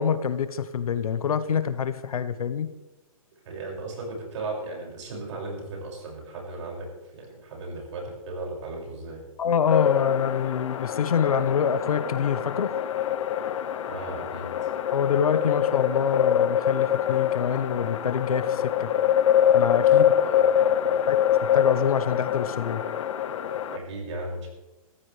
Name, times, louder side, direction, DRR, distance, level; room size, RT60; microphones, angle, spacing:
voice 1, 0.0-2.7 9.4-12.7 14.9-18.9 19.5-20.1 21.1-21.2 21.5-22.8, left 7 dB, 80° left, 11 dB, 1.3 m, -26 dB
voice 2, 3.4-6.9 7.1-9.2 13.9-14.5 19.8-21.1 23.7-24.5, right 2 dB, 55° right, -1 dB, 6.3 m, -36 dB
sound 1, 9.7-23.8, left 10 dB, 60° left, 0.9 m, -24 dB
20.0 x 14.5 x 3.4 m, 1.0 s
hypercardioid pair, 155°, 18 cm